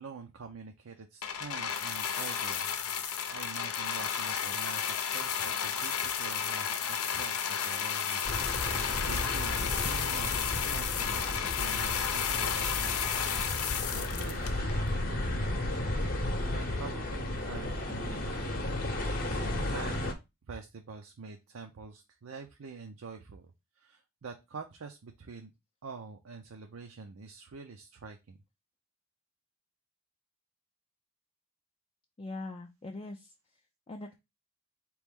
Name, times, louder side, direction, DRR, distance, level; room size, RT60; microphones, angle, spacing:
voice 1, 0.0-8.3 8.6-13.3 13.8-14.6 14.9-20.1 20.5-23.5 23.8-25.5 25.8-28.4, right 4 dB, 75° right, 4 dB, 0.5 m, -46 dB
sound 1, 1.2-14.9 15.6-15.7, left 8 dB, 90° left, 0.6 m, -32 dB
sound 2, 8.2-20.1, left 1 dB, 40° left, 0.8 m, -34 dB
voice 2, 32.2-33.3 33.9-34.1, left 2 dB, 25° left, 3 dB, 0.4 m, -41 dB
4.2 x 3.1 x 3.5 m, 0.23 s
head